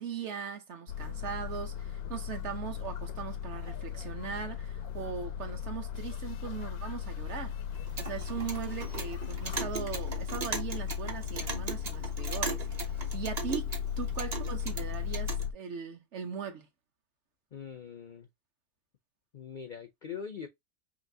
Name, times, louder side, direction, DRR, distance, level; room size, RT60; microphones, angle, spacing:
voice 1, 0.0-7.6 8.0-16.7, right 7 dB, 55° right, 1.0 m, -39 dB
sound 1, 0.9-15.5, left 8 dB, 85° left, 1.1 m, -37 dB
Clock, 7.7-15.5, right 4 dB, 35° right, 0.7 m, -39 dB
voice 2, 17.5-18.3 19.3-20.5, left 7 dB, 60° left, 0.5 m, -42 dB
5.7 x 2.6 x 2.6 m
omnidirectional pair, 1.5 m